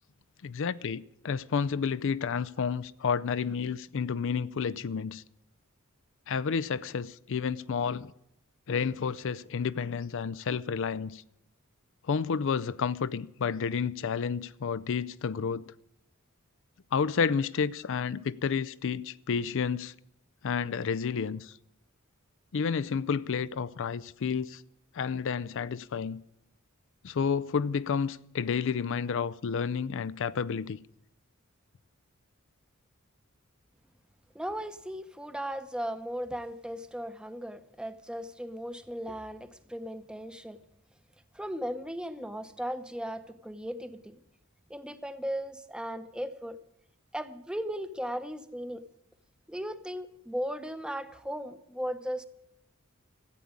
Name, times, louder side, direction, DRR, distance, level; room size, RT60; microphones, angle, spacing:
voice 1, 0.4-5.2 6.3-8.1 8.7-11.2 12.1-15.6 16.9-19.9 20.4-21.5 22.5-24.6 24.9-26.2 27.0-30.8, left 6 dB, 65° left, 0.5 m, -30 dB
voice 2, 34.3-40.6 41.3-44.2 44.7-46.6 47.1-48.8 49.5-52.3, equal, 5° right, 0.8 m, -37 dB
14.0 x 8.5 x 9.5 m
head